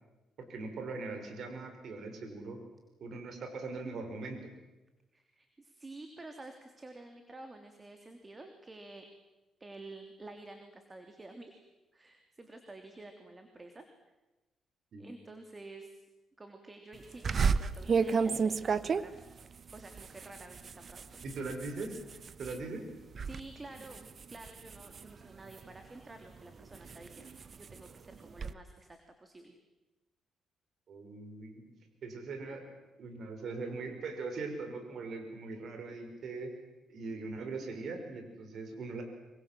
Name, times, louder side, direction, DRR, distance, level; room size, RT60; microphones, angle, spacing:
voice 1, 0.5-2.6 3.0-4.4 14.9-15.1 21.2-22.0 22.4-22.9 30.9-31.7 32.0-32.6 33.0-36.5 36.9-39.0, right 3 dB, 60° right, 5 dB, 6.0 m, -40 dB
voice 2, 5.1-9.1 9.6-11.6 11.9-13.9 15.0-16.0 16.4-19.2 19.7-21.3 23.2-29.6, right 2 dB, 25° right, 6 dB, 3.1 m, -50 dB
sound 1, 17.2-22.6 23.0-23.4 23.8-25.8 26.3-28.5, right 5 dB, 45° right, 1.0 m, -33 dB
26.0 x 24.5 x 7.8 m, 1.1 s
cardioid pair, 90°, 0 cm